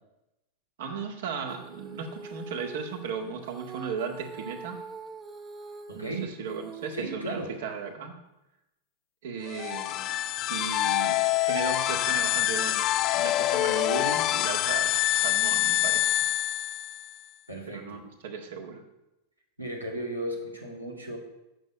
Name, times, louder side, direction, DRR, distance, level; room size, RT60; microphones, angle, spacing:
voice 1, 0.8-4.8 5.9-8.1 9.2-10.2 10.5-16.1 17.7-18.8, right 6 dB, 55° right, 4 dB, 1.7 m, -36 dB
Female singing, 1.4-7.9, right 4 dB, 20° right, 1.0 m, -44 dB
voice 2, 5.9-6.3 6.9-7.6 17.5-18.1 19.6-21.2, right 1 dB, 85° right, -1 dB, 2.3 m, -35 dB
sound 1, 9.5-17.1, left 14 dB, 40° left, 0.5 m, -26 dB
8.9 x 6.6 x 8.3 m, 0.94 s
figure-of-eight pair, 90°, 0 cm